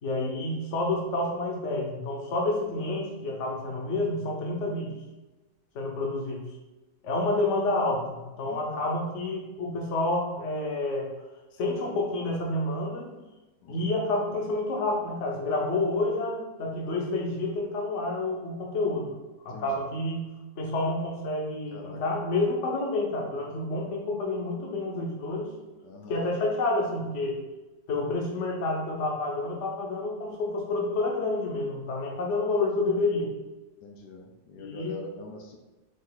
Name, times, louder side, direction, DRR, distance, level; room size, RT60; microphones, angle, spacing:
voice 1, 0.0-4.9 5.7-6.4 7.0-11.1 11.6-13.1 13.7-19.1 19.4-25.5 26.1-27.3 27.9-33.3 34.6-35.0, left 2 dB, 50° left, 0 dB, 1.0 m, -29 dB
voice 2, 19.5-19.8 21.7-22.0 25.8-26.3 32.5-32.6 33.8-35.6, left 3 dB, 75° left, 2 dB, 1.2 m, -44 dB
5.3 x 2.5 x 3.9 m, 1.1 s
omnidirectional pair, 1.9 m